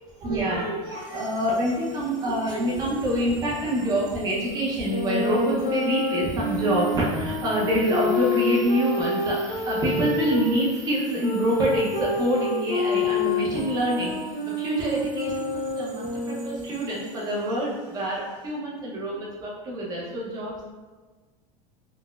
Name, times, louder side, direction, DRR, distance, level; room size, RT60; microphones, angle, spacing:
voice 1, 0.2-14.2 14.5-20.6, equal, 20° right, -5 dB, 0.6 m, -26 dB
sound 1, 0.8-18.5, right 3 dB, 60° right, 0.7 m, -49 dB
sound 2, 4.9-10.5 11.2-16.7, left 2 dB, 35° left, 0.5 m, -28 dB
3.9 x 2.1 x 2.3 m, 1.3 s
supercardioid pair, 165°, 18 cm